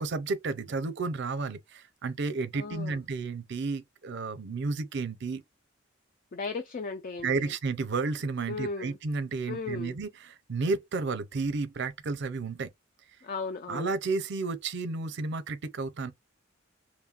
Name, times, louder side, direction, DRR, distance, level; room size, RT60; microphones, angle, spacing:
voice 1, 0.0-5.4 7.2-12.7 13.7-16.1, right 4 dB, 60° right, 0.6 m, -32 dB
voice 2, 2.5-3.0 6.3-7.5 8.5-9.0 9.5-10.0 13.2-13.9, left 4 dB, 45° left, 0.4 m, -36 dB
3.1 x 2.1 x 2.4 m
head